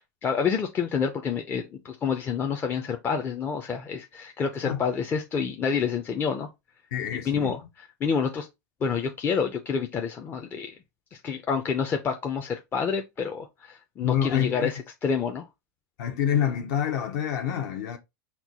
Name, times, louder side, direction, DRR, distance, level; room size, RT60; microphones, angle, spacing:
voice 1, 0.2-6.5 7.3-7.6 8.0-8.5 8.8-10.8 11.2-15.5, left 6 dB, 20° left, 0.4 m, -28 dB
voice 2, 6.9-7.6 14.0-14.7 16.0-18.0, left 9 dB, 60° left, 0.7 m, -27 dB
4.4 x 2.2 x 3.9 m
supercardioid pair, 135°, 10 cm